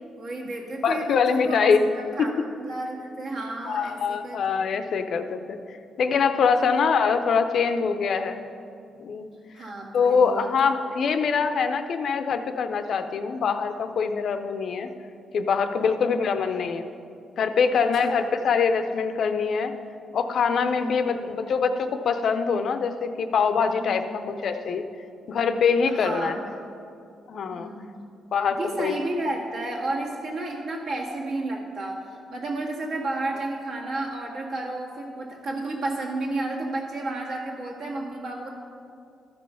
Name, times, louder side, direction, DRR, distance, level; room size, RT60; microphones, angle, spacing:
voice 1, 0.2-1.7 2.2-2.3 2.6-4.4 6.6-6.7 9.5-10.7 15.8-16.1 17.7-18.3 20.8-20.9 23.8-24.3 25.9-26.6 27.5-27.9 28.5-32.0 32.3-38.5, right 2 dB, 60° right, -2 dB, 1.8 m, -32 dB
voice 2, 0.8-1.8 2.2-2.3 3.7-5.6 6.0-8.4 9.0-9.3 9.9-14.9 15.3-16.9 17.4-19.7 20.1-24.8 25.3-26.4 27.3-27.7 28.3-28.9, left 5 dB, 55° left, 8 dB, 0.5 m, -24 dB
13.0 x 5.3 x 5.6 m, 2.5 s
cardioid pair, 130°, 0 cm